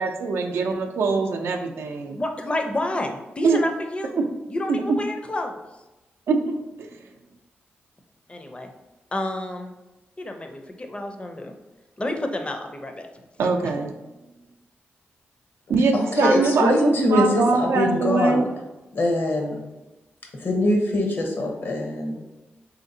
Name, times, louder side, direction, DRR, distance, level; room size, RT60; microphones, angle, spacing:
voice 1, 0.0-2.2 3.4-3.6 4.7-4.8 6.3-6.9 13.4-13.9 15.7-18.5, right 4 dB, 80° right, 3 dB, 0.4 m, -23 dB
voice 2, 2.1-5.6 8.3-8.7 9.1-9.7 10.2-11.5 12.0-13.1, left 1 dB, 25° left, 4 dB, 0.5 m, -29 dB
voice 3, 15.9-18.5 18.9-19.6 20.4-22.2, left 1 dB, 60° left, 1 dB, 0.8 m, -23 dB
3.4 x 2.8 x 2.6 m, 1.0 s
cardioid pair, 55°, 4 cm